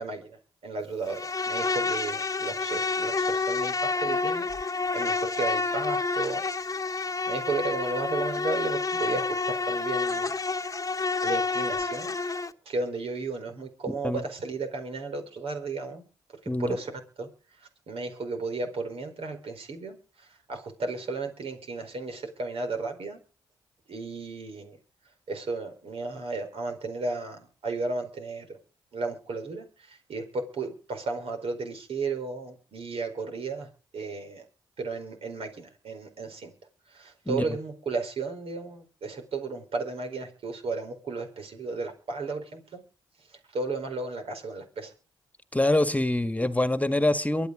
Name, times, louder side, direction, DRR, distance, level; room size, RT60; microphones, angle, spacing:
voice 1, 0.0-4.5 4.9-7.0 7.3-10.3 11.2-12.2 12.6-16.0 16.6-17.3 17.6-23.2 23.9-24.8 25.3-28.6 28.9-34.4 34.8-36.5 36.9-42.8 43.5-44.9, right 3 dB, 65° right, 5 dB, 4.6 m, -34 dB
Insect, 1.1-12.5, left 4 dB, 30° left, 1.2 m, -29 dB
voice 2, 13.9-14.2 16.5-16.8 37.3-37.6 45.5-47.5, left 1 dB, 15° left, 10 dB, 1.8 m, -25 dB
23.5 x 8.3 x 5.1 m, 0.35 s
hypercardioid pair, 40°, 11 cm